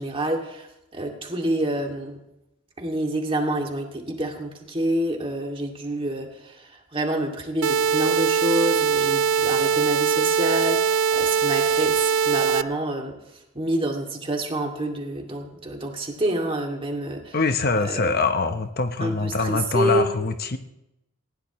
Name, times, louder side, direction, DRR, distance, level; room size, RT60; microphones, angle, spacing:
voice 1, 0.0-2.2 2.8-17.4 17.8-18.0 19.0-20.1, right 1 dB, 25° right, 2 dB, 2.4 m, -28 dB
sound 1, 7.6-12.6, right 6 dB, 80° right, 0.5 m, -21 dB
voice 2, 17.3-20.6, left 3 dB, 45° left, 8 dB, 0.9 m, -24 dB
19.5 x 17.0 x 3.1 m, 0.87 s
head